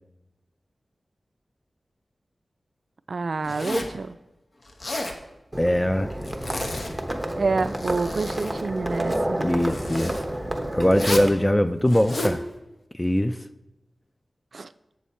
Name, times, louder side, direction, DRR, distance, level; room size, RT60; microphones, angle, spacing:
voice 1, 3.1-4.2 7.4-9.5 14.5-14.7, right 4 dB, 65° right, 13 dB, 0.3 m, -28 dB
Zipper (clothing), 3.4-4.0 4.7-5.2 6.2-6.9 7.5-8.6 9.6-10.2 10.9-11.3 11.9-12.4, left 1 dB, 50° left, 0.9 m, -31 dB
Livestock farm animals working animals, 5.5-11.3, right 1 dB, 10° right, 1.0 m, -30 dB
voice 2, 5.6-6.1 9.4-10.2 10.7-12.4 13.0-13.4, left 1 dB, 15° left, 10 dB, 0.3 m, -22 dB
7.4 x 7.0 x 4.3 m, 0.96 s
wide cardioid pair, 90°, 0 cm